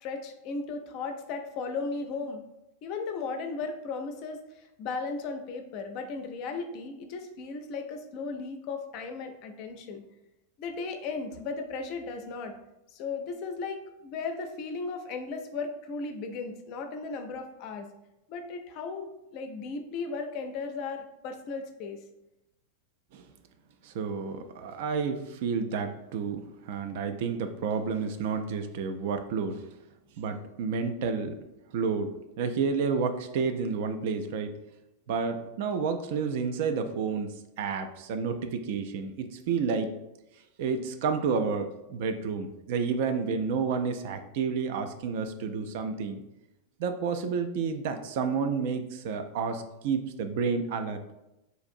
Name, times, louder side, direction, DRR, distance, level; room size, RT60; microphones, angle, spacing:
voice 1, 0.0-2.4 2.8-4.4 4.8-10.0 10.6-12.5 12.9-17.9 18.3-22.0, left 4 dB, 40° left, 6 dB, 0.4 m, -36 dB
voice 2, 23.9-29.6 30.2-31.4 31.7-34.5 35.1-39.9 40.6-46.2 46.8-51.0, right 5 dB, 50° right, 7 dB, 0.3 m, -30 dB
4.0 x 2.5 x 2.5 m, 0.91 s
figure-of-eight pair, 90°, 0 cm